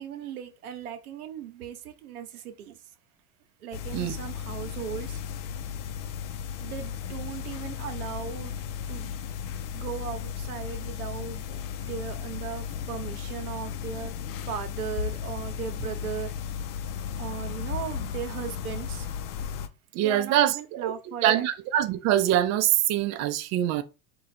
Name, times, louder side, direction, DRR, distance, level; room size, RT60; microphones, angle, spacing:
voice 1, 0.0-2.8 3.6-5.2 6.6-8.5 8.9-9.1 9.7-11.4 11.8-14.1 14.5-16.3 17.2-19.1 20.0-21.4, right 9 dB, 85° right, 1.0 m, -37 dB
sound 1, 3.7-19.7, left 8 dB, 60° left, 0.7 m, -35 dB
voice 2, 19.9-20.9 21.2-23.8, right 12 dB, 40° right, 0.5 m, -24 dB
3.8 x 2.6 x 4.2 m
supercardioid pair, 115°, 43 cm